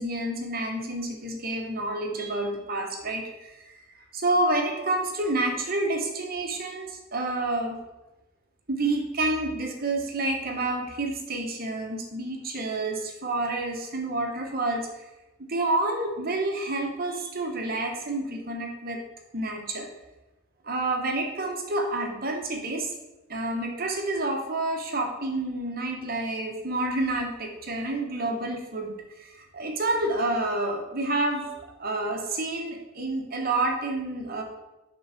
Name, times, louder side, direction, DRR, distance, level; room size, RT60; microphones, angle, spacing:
voice 1, 0.0-3.8 4.1-7.8 8.7-14.9 15.4-19.0 19.3-19.9 20.6-22.9 23.3-31.5 31.8-34.4, right 2 dB, 45° right, 2 dB, 1.2 m, -29 dB
9.3 x 4.0 x 5.9 m, 1.0 s
head